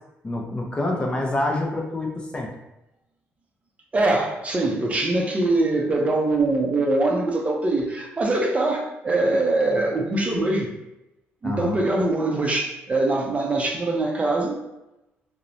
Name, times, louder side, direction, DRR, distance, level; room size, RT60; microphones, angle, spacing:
voice 1, 0.2-2.5 11.4-11.8, left 2 dB, 20° left, 0 dB, 0.5 m, -26 dB
voice 2, 3.9-10.7 11.4-14.6, right 2 dB, 30° right, 0 dB, 0.5 m, -23 dB
2.9 x 2.0 x 2.5 m, 0.92 s
cardioid pair, 85°, 5 cm